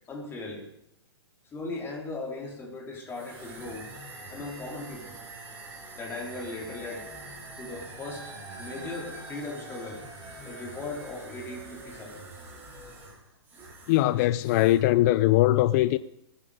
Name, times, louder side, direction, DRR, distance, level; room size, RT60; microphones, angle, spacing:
voice 1, 0.1-0.7 1.5-3.9 4.3-5.2 6.0-7.1 7.6-10.0 10.4-12.2, left 2 dB, 15° left, 3.6 m, -38 dB
sound 1, 3.1-14.1 14.3-14.9, right 2 dB, 15° right, 6.9 m, -44 dB
voice 2, 13.9-16.0, left 15 dB, 35° left, 0.5 m, -21 dB
20.0 x 10.0 x 5.0 m
hypercardioid pair, 140°, 14 cm